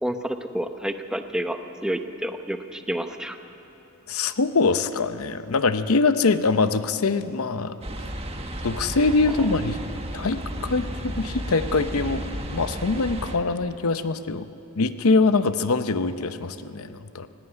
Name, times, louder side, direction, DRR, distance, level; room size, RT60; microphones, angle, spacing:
voice 1, 0.0-3.4, equal, 5° right, 7 dB, 0.8 m, -29 dB
voice 2, 4.1-7.8 8.6-9.8 10.1-14.5 14.8-17.3, left 3 dB, 85° left, 11 dB, 0.7 m, -23 dB
sound 1, 7.8-13.4, equal, 30° right, 1.5 m, -33 dB
17.5 x 16.5 x 9.8 m, 2.9 s
head